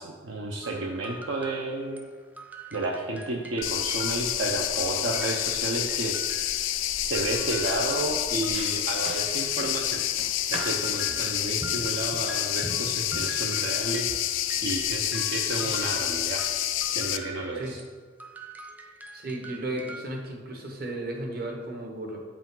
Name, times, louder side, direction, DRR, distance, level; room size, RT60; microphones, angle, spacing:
voice 1, 0.0-2.1 2.7-6.2 7.0-10.1 10.5-14.1 14.6-16.6 16.9-17.8, right 2 dB, 75° right, -1 dB, 0.7 m, -31 dB
sound 1, 0.6-6.8 7.1-9.5 10.5-17.9 18.2-20.2, right 2 dB, 10° right, 0.4 m, -44 dB
sound 2, 3.6-17.2, left 12 dB, 80° left, 0.4 m, -28 dB
sound 3, 6.6-6.8 7.2-14.8, right 2 dB, 35° right, 0.9 m, -42 dB
voice 2, 19.1-22.2, right 1 dB, 50° right, 1 dB, 1.2 m, -35 dB
7.9 x 5.0 x 3.8 m, 1.5 s
head